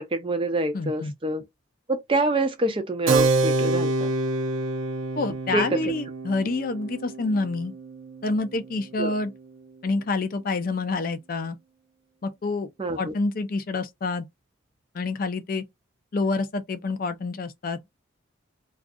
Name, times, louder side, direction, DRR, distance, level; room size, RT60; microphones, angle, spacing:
voice 1, 0.0-1.4 1.9-4.1 5.5-5.8 9.0-9.1 12.8-13.1, right 2 dB, 25° right, 0.4 m, -26 dB
voice 2, 0.7-1.1 5.2-7.7 8.2-9.3 9.8-11.6 12.2-12.7 13.0-14.3 14.9-15.6 16.1-17.9, left 3 dB, 45° left, 0.4 m, -27 dB
Keyboard (musical), 3.1-9.2, right 3 dB, 75° right, 0.5 m, -27 dB
2.4 x 2.4 x 2.5 m
head